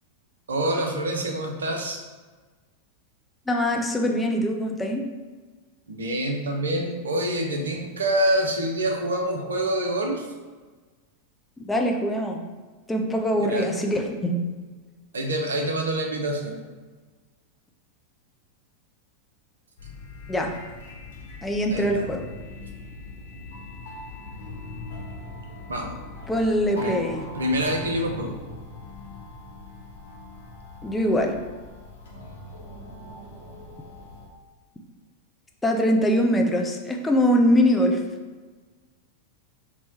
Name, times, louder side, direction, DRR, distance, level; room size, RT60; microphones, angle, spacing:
voice 1, 0.5-2.0 5.9-10.2 13.5-13.7 15.1-16.6 21.7-22.0 25.7-25.9 26.8-27.0 27.3-28.4, right 1 dB, 70° right, 3 dB, 0.6 m, -26 dB
voice 2, 3.5-5.1 11.7-12.4 12.9-14.4 20.3-20.6 21.4-22.3 26.3-27.3 30.8-31.4 35.6-38.0, equal, 10° left, 1 dB, 0.5 m, -23 dB
sound 1, 19.8-34.3, left 2 dB, 65° left, 1.0 m, -41 dB
4.2 x 2.2 x 4.3 m, 1.3 s
figure-of-eight pair, 90°, 0 cm